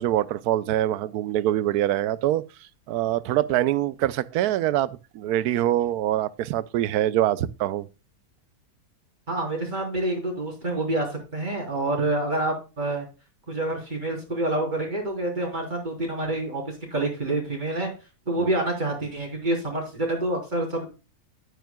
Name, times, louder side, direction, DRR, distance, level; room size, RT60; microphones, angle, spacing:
voice 1, 0.0-2.4 2.9-7.9 18.4-18.5, right 13 dB, 90° right, 1.1 m, -24 dB
voice 2, 9.3-13.1 13.5-17.9 18.3-20.9, right 2 dB, 30° right, 3.8 m, -27 dB
10.5 x 9.1 x 2.3 m
omnidirectional pair, 1.6 m